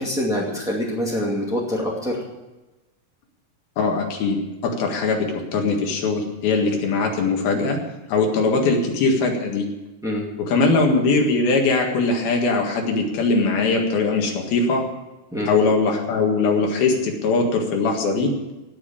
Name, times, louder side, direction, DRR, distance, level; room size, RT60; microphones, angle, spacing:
voice 1, 0.0-2.2 10.0-10.2 15.3-15.5, equal, ahead, -4 dB, 0.8 m, -25 dB
voice 2, 3.8-7.8 8.1-9.7 10.4-14.8 15.5-18.3, left 3 dB, 70° left, 1 dB, 3.6 m, -21 dB
17.5 x 6.2 x 8.6 m, 1.1 s
omnidirectional pair, 4.5 m